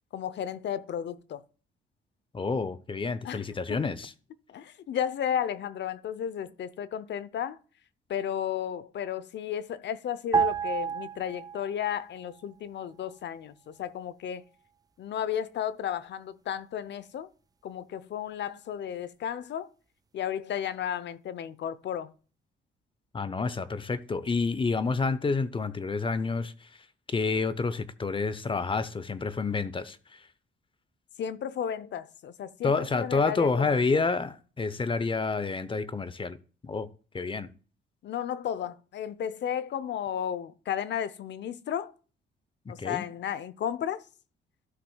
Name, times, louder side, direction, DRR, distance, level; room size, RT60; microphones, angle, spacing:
voice 1, 0.1-1.4 3.2-3.9 4.5-7.6 8.1-14.4 15.0-17.3 17.6-19.7 20.1-22.1 31.2-34.0 38.0-41.9 42.7-44.0, left 9 dB, 65° left, 0.7 m, -33 dB
voice 2, 2.3-4.1 23.1-26.5 27.1-30.0 32.6-36.4 36.6-36.9 37.1-37.5 42.8-43.0, left 4 dB, 25° left, 0.8 m, -28 dB
sound 1, 10.3-12.0 12.2-12.5, right 7 dB, 20° right, 0.3 m, -29 dB
13.5 x 5.9 x 2.3 m
cardioid pair, 90°, 20 cm